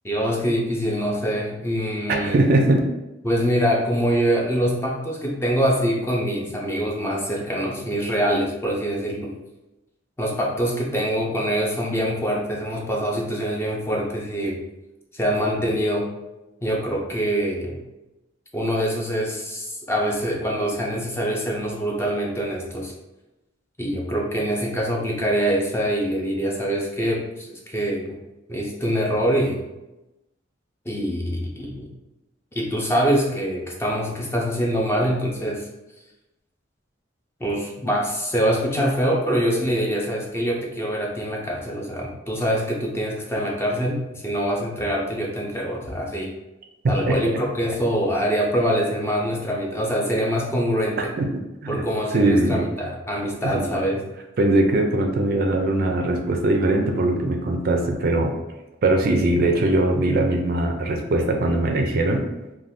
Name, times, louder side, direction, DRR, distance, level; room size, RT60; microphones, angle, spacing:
voice 1, 0.0-2.4 3.2-9.3 10.2-14.6 15.1-16.1 16.6-17.8 18.5-22.9 23.8-28.2 28.5-29.6 30.9-31.9 32.5-35.7 37.4-46.3 46.9-51.0 51.7-54.0, equal, 15° left, -2 dB, 0.4 m, -24 dB
voice 2, 2.1-2.8 46.8-47.2 51.0-51.9 52.1-52.6 53.4-53.6 54.4-58.3 58.8-62.3, right 2 dB, 50° right, 3 dB, 0.4 m, -21 dB
2.5 x 2.2 x 3.4 m, 0.99 s
head